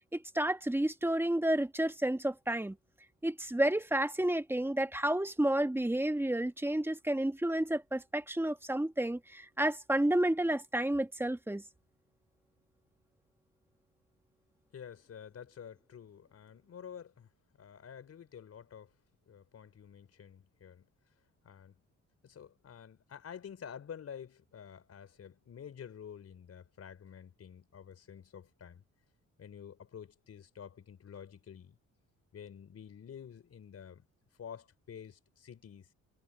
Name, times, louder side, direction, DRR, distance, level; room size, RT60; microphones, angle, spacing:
voice 1, 0.1-2.7 3.2-11.6, right 1 dB, 5° right, 1.5 m, -31 dB
voice 2, 14.7-17.3 17.6-18.9 19.3-20.9 21.4-21.8 22.2-28.8 29.4-31.8 32.3-34.0 34.4-35.9, left 8 dB, 55° left, 4.4 m, -49 dB
cardioid pair, 90°, 30 cm